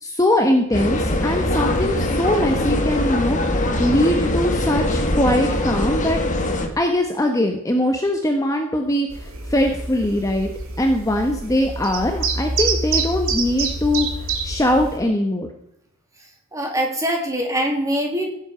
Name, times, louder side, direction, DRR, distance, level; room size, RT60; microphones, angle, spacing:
voice 1, 0.0-6.2 6.8-10.5 10.8-15.5, left 1 dB, 15° left, 3 dB, 1.1 m, -21 dB
sound 1, 0.7-6.7, left 1 dB, 35° left, 1.7 m, -22 dB
sound 2, 9.1-15.0, right 3 dB, 80° right, 2.7 m, -27 dB
voice 2, 16.5-18.3, equal, 15° right, 1 dB, 2.9 m, -23 dB
16.0 x 8.5 x 5.0 m, 0.80 s
head